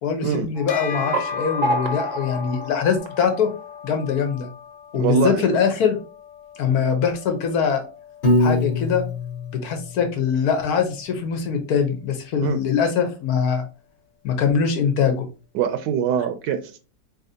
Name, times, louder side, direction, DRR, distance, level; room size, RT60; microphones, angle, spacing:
voice 1, 0.0-3.5 3.8-4.5 4.9-6.0 6.6-7.8 8.4-9.0 9.5-13.6 14.2-15.3, left 6 dB, 65° left, 6 dB, 1.1 m, -22 dB
sound 1, 0.5-3.9, right 2 dB, 60° right, 0.8 m, -29 dB
Bell, 0.7-10.4, left 7 dB, 85° left, 1.4 m, -37 dB
voice 2, 4.9-5.4 12.4-12.6 15.5-16.8, right 6 dB, 80° right, 8 dB, 1.2 m, -23 dB
Piano, 8.2-10.4, left 2 dB, 40° left, 1.0 m, -23 dB
4.0 x 3.3 x 2.7 m, 0.34 s
omnidirectional pair, 1.9 m